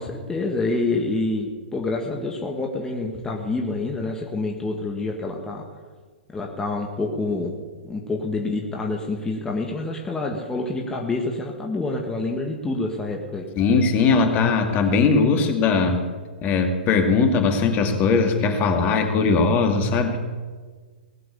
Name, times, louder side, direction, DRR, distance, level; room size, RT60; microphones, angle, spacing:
voice 1, 0.0-5.6 6.3-7.6 7.8-13.4, left 2 dB, 10° left, 0 dB, 1.8 m, -27 dB
voice 2, 13.6-16.0 16.4-20.2, left 4 dB, 30° left, 5 dB, 2.3 m, -19 dB
18.5 x 7.7 x 9.7 m, 1.5 s
hypercardioid pair, 115°, 5 cm